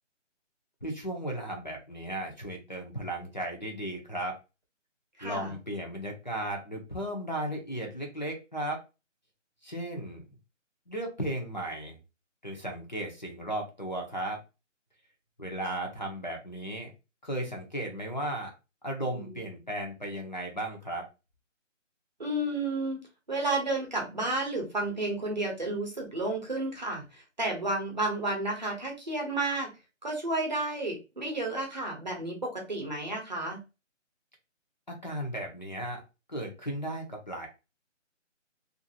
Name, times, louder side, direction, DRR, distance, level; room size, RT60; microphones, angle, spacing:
voice 1, 0.8-4.3 5.2-8.8 9.6-10.2 10.9-12.0 12.4-14.4 15.4-16.9 17.2-18.5 18.8-21.0 34.9-36.0 36.3-37.5, right 1 dB, 35° left, 2 dB, 0.6 m, -35 dB
voice 2, 5.2-5.5 19.1-19.3 22.2-23.0 23.3-29.7 30.0-33.6, right 2 dB, 35° right, 1 dB, 0.8 m, -31 dB
2.5 x 2.5 x 2.6 m, 0.28 s
figure-of-eight pair, 170°, 38 cm